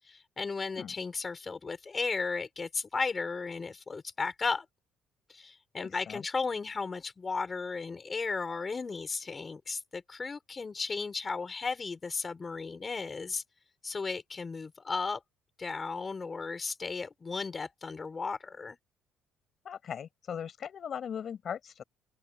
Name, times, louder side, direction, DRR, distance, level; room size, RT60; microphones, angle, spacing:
voice 1, 0.0-4.7 5.3-13.4 13.8-15.2 15.6-18.8, left 4 dB, 20° left, 6.1 m, -35 dB
voice 2, 0.6-0.9 5.8-6.2 19.6-21.8, left 8 dB, 35° left, 5.8 m, -39 dB
open air
cardioid pair, 165°, 0 cm